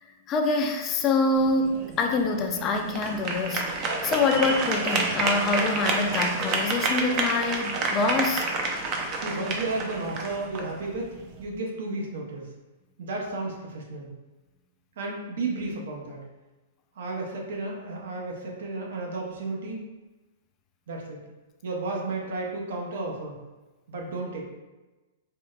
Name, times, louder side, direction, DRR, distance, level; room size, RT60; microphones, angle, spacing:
voice 1, 0.3-8.5, left 3 dB, 30° left, 4 dB, 0.4 m, -25 dB
sound 1, 1.4-11.4, right 3 dB, 35° right, 0.5 m, -29 dB
voice 2, 9.1-11.1 11.4-12.5 13.0-14.1 15.0-16.2 17.0-19.8 20.9-21.2 21.6-23.4 23.9-24.4, right 2 dB, 70° right, -1 dB, 0.7 m, -33 dB
4.5 x 2.1 x 2.3 m, 1.1 s
hypercardioid pair, 130°, 0 cm